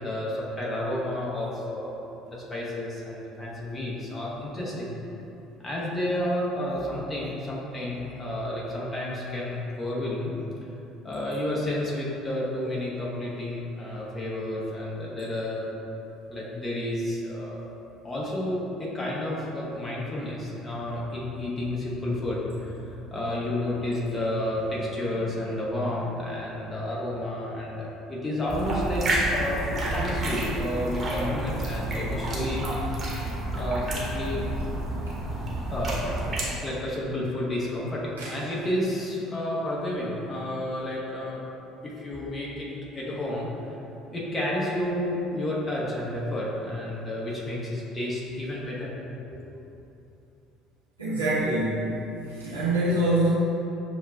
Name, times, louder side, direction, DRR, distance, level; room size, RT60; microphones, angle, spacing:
voice 1, 0.0-4.9 5.6-10.3 11.0-15.7 16.3-17.6 18.0-32.6 32.9-33.0 33.5-34.4 35.7-41.4 41.8-48.9 49.3-49.4, left 1 dB, 25° left, -5 dB, 1.0 m, -31 dB
sound 1, 28.5-36.5, right 1 dB, 35° right, 1.0 m, -30 dB
voice 2, 51.0-51.9 52.3-53.3, right 1 dB, 90° right, -12 dB, 1.1 m, -25 dB
6.9 x 2.3 x 2.4 m, 2.9 s
figure-of-eight pair, 60°, 0 cm